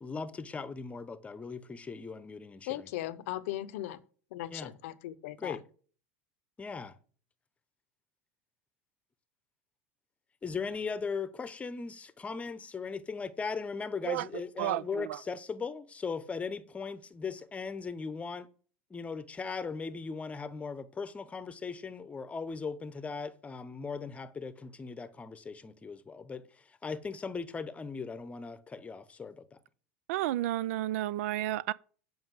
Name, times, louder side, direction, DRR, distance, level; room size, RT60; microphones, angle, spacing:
voice 1, 0.0-2.9 4.5-4.8 5.4-5.6 6.6-7.0 10.4-18.5 18.9-29.6, left 5 dB, 15° left, 0.8 m, -38 dB
voice 2, 2.7-4.0 4.3-5.6, left 15 dB, 75° left, 0.7 m, -38 dB
voice 3, 14.1-15.2 30.1-31.7, right 14 dB, 75° right, 0.4 m, -32 dB
7.8 x 5.5 x 7.6 m
supercardioid pair, 115°, 8 cm